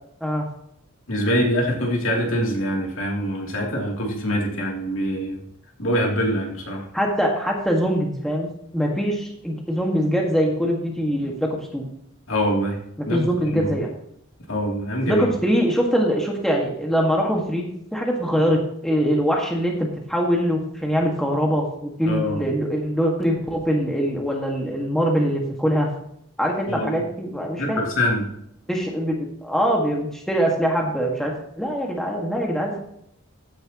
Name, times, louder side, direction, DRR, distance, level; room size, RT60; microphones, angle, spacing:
voice 1, 1.1-5.4 5.8-6.9 12.3-12.8 13.1-13.2 13.5-13.7 14.5-15.3 22.1-22.4 26.7-27.0 27.6-28.3, equal, 65° left, -1 dB, 3.0 m, -24 dB
voice 2, 6.9-8.5 8.7-11.8 13.1-13.9 15.1-25.9 26.4-27.8 28.7-32.8, equal, ahead, -1 dB, 1.8 m, -23 dB
14.5 x 10.5 x 3.0 m, 0.73 s
head